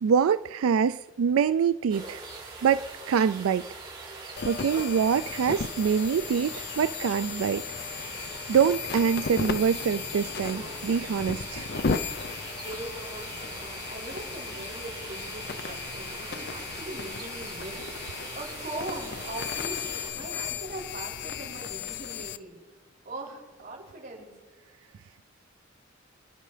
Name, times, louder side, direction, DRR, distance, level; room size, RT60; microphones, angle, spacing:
voice 1, 0.0-2.2 2.6-3.7 4.4-8.0 8.5-11.7, right 7 dB, 90° right, 13 dB, 0.3 m, -25 dB
sound 1, 1.9-20.1, right 3 dB, 25° right, 5.0 m, -42 dB
sound 2, 4.4-22.4, left 6 dB, 50° left, 0.6 m, -35 dB
voice 2, 12.6-22.6 23.0-24.3, right 2 dB, 45° right, -5 dB, 6.0 m, -41 dB
28.0 x 10.5 x 3.3 m, 1.3 s
head